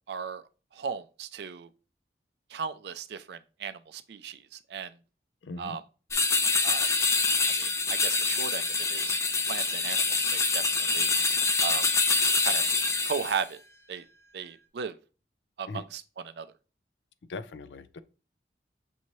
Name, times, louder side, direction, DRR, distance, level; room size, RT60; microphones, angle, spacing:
voice 1, 0.1-0.4 0.7-1.7 2.5-4.9 5.6-5.8 6.6-6.9 7.5-9.1 9.5-11.1 11.6-11.9 12.4-12.6 13.0-13.6 13.9-14.0 14.3-14.9 15.6-16.5, right 6 dB, 70° right, 0.4 m, -36 dB
voice 2, 5.4-5.8 15.7-15.8 17.3-18.0, left 3 dB, 85° left, 0.4 m, -39 dB
sound 1, 6.1-13.4, left 4 dB, 15° left, 0.3 m, -26 dB
6.3 x 2.8 x 3.0 m
head